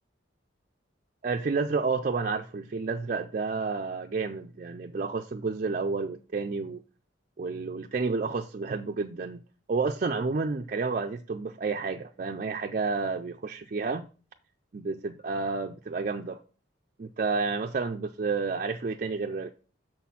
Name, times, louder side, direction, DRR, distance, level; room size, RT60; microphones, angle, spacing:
voice 1, 1.2-6.8 7.4-9.4 9.7-14.0 14.7-16.4 17.0-19.5, right 4 dB, 45° right, 0.4 m, -30 dB
6.5 x 4.2 x 5.5 m
head